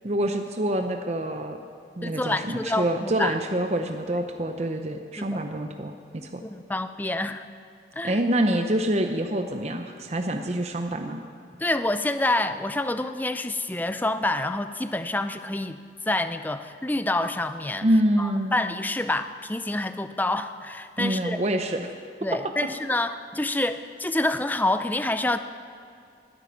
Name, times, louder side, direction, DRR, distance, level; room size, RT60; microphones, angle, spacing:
voice 1, 0.0-1.6 2.0-6.4 8.0-11.2 17.8-18.5 21.0-21.9, right 1 dB, 35° right, 5 dB, 0.7 m, -26 dB
voice 2, 2.0-3.4 5.2-5.4 6.4-7.4 8.0-8.2 11.6-15.8 16.1-17.9 18.2-21.4 22.2-25.4, left 2 dB, 10° left, 10 dB, 0.5 m, -27 dB
20.0 x 9.3 x 5.9 m, 2.4 s
head